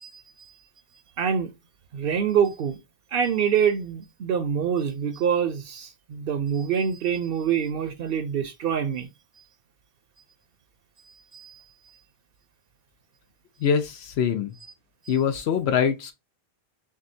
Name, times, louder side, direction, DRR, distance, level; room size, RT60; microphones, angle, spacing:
voice 1, 1.2-1.5 1.9-2.8 3.1-9.1 11.3-11.6, right 7 dB, 65° right, 0.8 m, -25 dB
voice 2, 13.6-14.5 15.1-16.1, left 7 dB, 80° left, 0.9 m, -24 dB
6.1 x 2.3 x 2.6 m
omnidirectional pair, 1.1 m